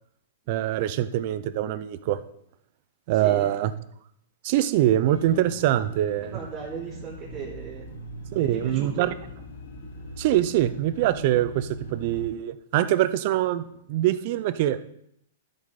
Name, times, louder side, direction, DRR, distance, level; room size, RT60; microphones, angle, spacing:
voice 1, 0.5-2.2 3.1-3.7 4.4-6.4 8.3-9.1 10.2-14.9, right 13 dB, 50° right, 13 dB, 0.7 m, -24 dB
voice 2, 3.1-3.5 6.3-7.9 8.4-9.1, right 5 dB, 30° right, -9 dB, 3.3 m, -37 dB
sound 1, 5.0-12.3, equal, 80° left, 3.4 m, -40 dB
12.0 x 7.7 x 4.2 m, 0.74 s
hypercardioid pair, 135°, 0 cm